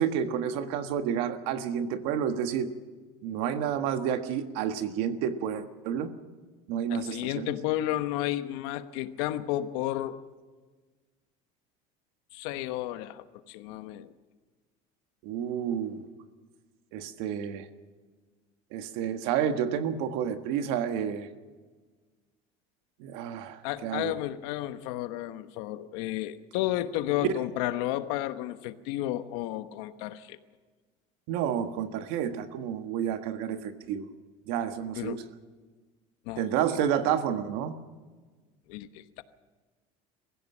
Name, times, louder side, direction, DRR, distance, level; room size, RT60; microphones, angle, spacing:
voice 1, 0.0-2.7 3.2-6.1 6.7-7.5 15.2-16.0 16.9-17.7 18.7-21.3 23.0-24.1 31.3-34.1 34.5-35.2 36.4-37.8, right 8 dB, 80° right, 8 dB, 1.6 m, -30 dB
voice 2, 6.9-10.2 12.3-14.1 23.6-30.4 35.0-35.2 36.3-36.4 38.7-39.2, left 14 dB, 85° left, 11 dB, 1.1 m, -32 dB
23.0 x 15.5 x 7.4 m, 1.4 s
cardioid pair, 165°, 16 cm